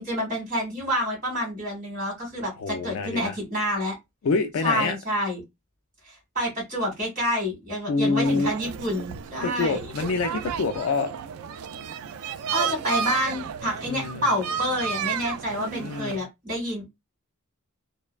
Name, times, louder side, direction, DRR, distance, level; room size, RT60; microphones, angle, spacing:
voice 1, 0.0-3.9 4.6-5.4 6.1-9.8 12.5-16.9, equal, 40° right, 1.8 m, -28 dB
voice 2, 2.6-3.4 4.2-5.0 7.9-8.5 9.4-11.1 13.9-14.2 15.8-16.2, left 4 dB, 65° left, 0.3 m, -26 dB
sound 1, 8.2-16.2, right 7 dB, 80° right, 0.3 m, -33 dB
3.1 x 2.1 x 2.3 m
head